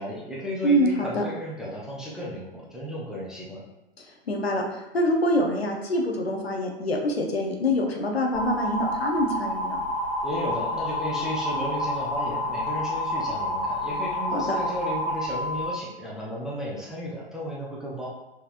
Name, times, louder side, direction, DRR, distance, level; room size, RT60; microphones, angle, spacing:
voice 1, 0.0-3.6 10.2-18.1, equal, ahead, -6 dB, 0.6 m, -34 dB
voice 2, 0.6-1.3 4.3-4.7 4.9-9.8 14.3-14.5, equal, 75° left, 1 dB, 0.9 m, -25 dB
sound 1, 8.3-15.7, left 1 dB, 30° left, 1.5 m, -29 dB
5.6 x 3.4 x 2.5 m, 0.94 s
figure-of-eight pair, 105°, 31 cm